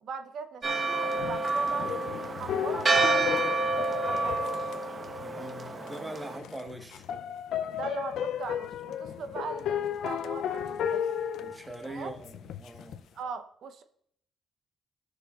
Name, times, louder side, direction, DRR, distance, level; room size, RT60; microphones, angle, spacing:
voice 1, 0.0-4.7 7.7-11.0 11.8-12.1 13.2-13.8, right 5 dB, 65° right, 0.8 m, -40 dB
Church bell, 0.6-6.4, right 3 dB, 35° right, 1.0 m, -29 dB
sound 1, 1.1-5.5 5.9-6.0 6.4-13.0, left 9 dB, 75° left, 0.5 m, -34 dB
voice 2, 5.1-7.1 9.1-9.2 11.4-13.0, right 1 dB, 10° right, 1.4 m, -42 dB
14.5 x 6.5 x 2.4 m
cardioid pair, 90°, 0 cm